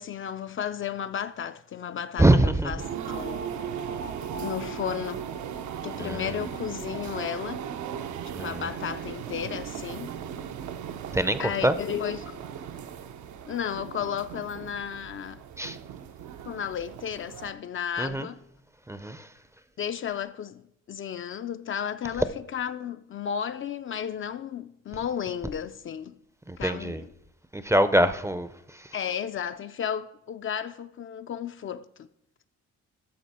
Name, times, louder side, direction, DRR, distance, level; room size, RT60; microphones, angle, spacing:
voice 1, 0.0-2.3 2.6-2.8 3.1-3.6 4.4-5.3 5.8-7.7 8.4-10.1 11.4-12.5 13.5-15.4 16.5-18.4 19.8-22.3 22.5-26.2 26.6-27.1 28.9-32.1, left 8 dB, 45° left, 0.4 m, -33 dB
voice 2, 2.2-2.7 6.0-6.5 8.3-8.7 11.1-11.8 15.6-15.8 18.0-18.3 18.9-19.3 26.5-27.0 27.5-28.9, right 1 dB, 10° right, 0.5 m, -24 dB
sound 1, 2.8-17.5, right 8 dB, 70° right, 0.7 m, -37 dB
12.5 x 6.5 x 4.2 m
cardioid pair, 90°, 30 cm